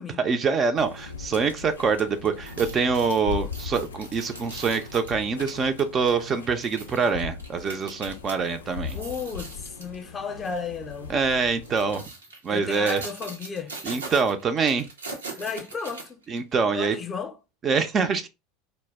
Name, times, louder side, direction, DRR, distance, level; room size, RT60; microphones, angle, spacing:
voice 1, 0.2-9.0 11.1-12.0 12.4-13.0 13.8-14.9 16.3-17.0 17.6-18.3, right 5 dB, 35° right, 0.4 m, -25 dB
sound 1, 0.7-12.1, left 5 dB, 90° left, 0.3 m, -39 dB
sound 2, 2.3-8.4 8.8-10.0 10.4-10.6 11.4-16.5 16.9-17.0, right 3 dB, 85° right, 0.6 m, -41 dB
voice 2, 8.9-11.1 12.5-13.7 15.4-16.2 16.7-17.4, left 5 dB, 30° left, 0.5 m, -34 dB
2.2 x 2.0 x 3.2 m
hypercardioid pair, 80°, 0 cm